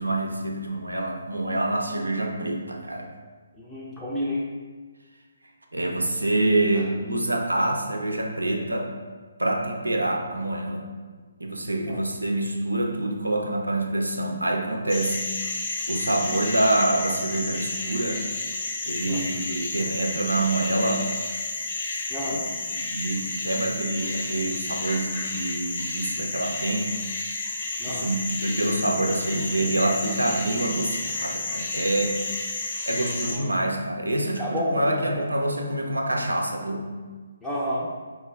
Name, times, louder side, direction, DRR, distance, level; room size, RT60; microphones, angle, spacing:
voice 1, 0.0-3.1 5.7-8.9 9.4-10.8 11.4-15.2 15.9-18.2 18.8-21.1 22.7-27.0 27.9-32.2 32.9-36.9, right 1 dB, 85° right, 3 dB, 0.5 m, -26 dB
voice 2, 3.6-4.5 6.8-6.9 11.9-12.0 19.0-19.2 22.1-22.4 27.8-28.1 33.2-33.4 34.1-35.1 37.4-37.9, equal, 5° left, -9 dB, 0.5 m, -30 dB
sound 1, 14.9-33.4, left 3 dB, 45° left, 0.7 m, -31 dB
4.4 x 2.3 x 3.3 m, 1.4 s
figure-of-eight pair, 140°, 0 cm